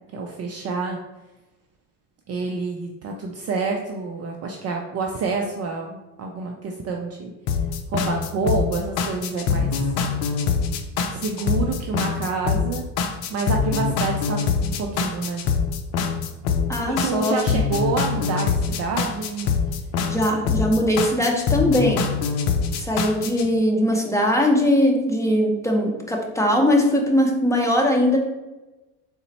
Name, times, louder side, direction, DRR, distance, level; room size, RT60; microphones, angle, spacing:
voice 1, 0.1-1.0 2.3-7.3 7.9-9.9 11.1-12.9 13.3-15.4 16.9-19.5, right 4 dB, 35° right, 1 dB, 0.4 m, -28 dB
sound 1, 7.5-23.5, left 5 dB, 65° left, 0.6 m, -24 dB
voice 2, 16.7-17.6 20.1-22.0 22.8-28.2, left 1 dB, 5° left, 0 dB, 0.8 m, -20 dB
3.8 x 2.2 x 4.1 m, 1.1 s
hypercardioid pair, 70°, 46 cm